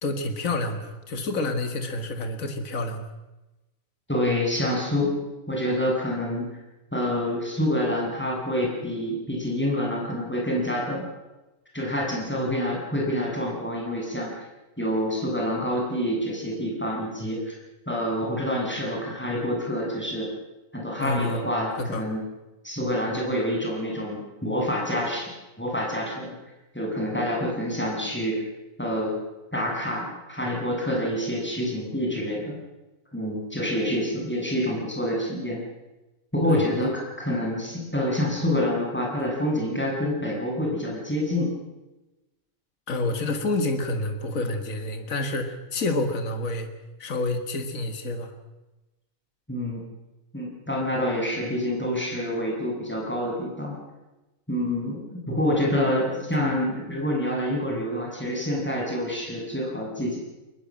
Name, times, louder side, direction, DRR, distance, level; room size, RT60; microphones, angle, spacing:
voice 1, 0.0-3.1 21.0-21.5 21.8-22.0 36.5-36.6 42.9-46.7 47.0-48.3 56.2-56.3, left 2 dB, 65° left, 7 dB, 2.3 m, -28 dB
voice 2, 4.1-5.2 5.5-6.6 6.9-11.1 11.7-14.4 14.8-17.6 17.9-20.3 20.7-22.2 22.6-25.3 25.6-26.3 26.7-28.4 28.8-29.1 29.5-32.6 33.1-35.6 36.3-36.9 37.2-41.5 49.5-49.8 50.3-53.8 54.5-60.2, left 1 dB, 5° left, -2 dB, 7.7 m, -27 dB
23.0 x 20.5 x 7.6 m, 1.0 s
omnidirectional pair, 1.5 m